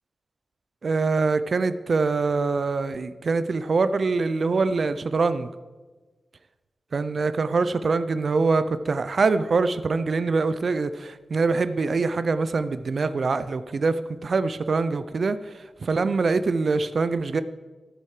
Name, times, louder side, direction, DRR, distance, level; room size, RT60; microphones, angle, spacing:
voice 1, 0.8-5.5 6.9-17.4, right 4 dB, 50° right, 12 dB, 0.5 m, -24 dB
13.0 x 9.0 x 4.9 m, 1.3 s
wide cardioid pair, 110°, 0 cm